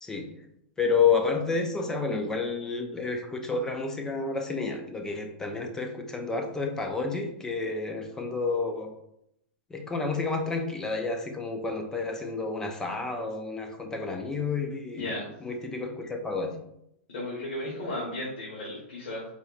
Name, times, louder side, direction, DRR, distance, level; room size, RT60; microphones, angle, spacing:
voice 1, 0.8-8.9 9.7-15.1 15.4-16.6, left 4 dB, 10° left, 4 dB, 0.4 m, -30 dB
voice 2, 14.9-15.3 17.1-19.3, left 1 dB, 70° left, -5 dB, 1.3 m, -34 dB
4.1 x 2.9 x 2.4 m, 0.77 s
supercardioid pair, 160°, 7 cm